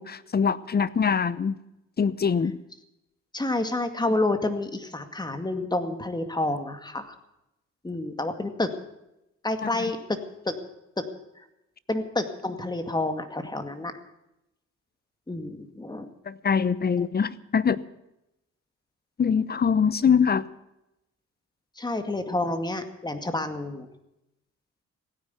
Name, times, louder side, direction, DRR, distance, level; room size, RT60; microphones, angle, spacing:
voice 1, 0.0-1.6 2.0-2.6 9.6-9.7 16.3-17.8 19.2-20.5, left 6 dB, 30° left, 18 dB, 0.8 m, -23 dB
voice 2, 3.3-7.1 7.8-8.7 9.4-10.2 10.5-10.6 11.9-13.9 15.3-16.1 17.0-17.1 21.8-23.9, left 2 dB, 15° left, 8 dB, 2.1 m, -29 dB
16.5 x 9.9 x 8.3 m, 0.88 s
cardioid pair, 90°, 30 cm